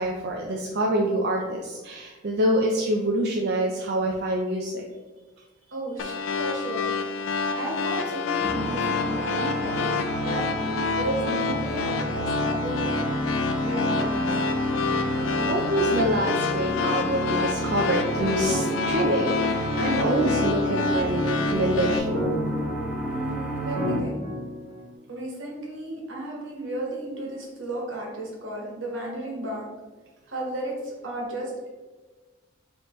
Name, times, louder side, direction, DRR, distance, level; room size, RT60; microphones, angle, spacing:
voice 1, 0.0-4.8 14.8-22.3, right 1 dB, 55° right, -1 dB, 0.4 m, -26 dB
voice 2, 5.7-6.9 7.5-9.9 10.2-13.1 13.6-14.3 23.0-24.2 25.1-29.6 30.3-31.7, right 1 dB, 80° right, -2 dB, 1.3 m, -34 dB
sound 1, 6.0-22.0, left 5 dB, 75° left, 0.4 m, -28 dB
sound 2, 8.4-24.0, equal, 10° right, 0.7 m, -30 dB
sound 3, 18.4-19.5 20.1-21.5 22.1-23.2 23.8-24.8, left 1 dB, 45° left, 1.2 m, -32 dB
4.9 x 3.1 x 3.1 m, 1.3 s
head